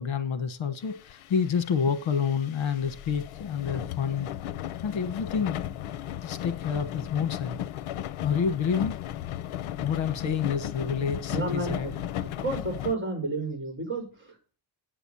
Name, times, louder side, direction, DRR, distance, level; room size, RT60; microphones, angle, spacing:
voice 1, 0.0-4.3 4.8-5.7 6.2-7.6 8.2-9.0 9.8-11.9, left 7 dB, 70° left, 1.3 m, -28 dB
sound 1, 0.8-12.9, left 12 dB, 85° left, 0.7 m, -36 dB
voice 2, 11.3-11.9 12.2-14.4, right 2 dB, 25° right, 5.0 m, -31 dB
9.1 x 8.3 x 7.0 m
wide cardioid pair, 150°, 48 cm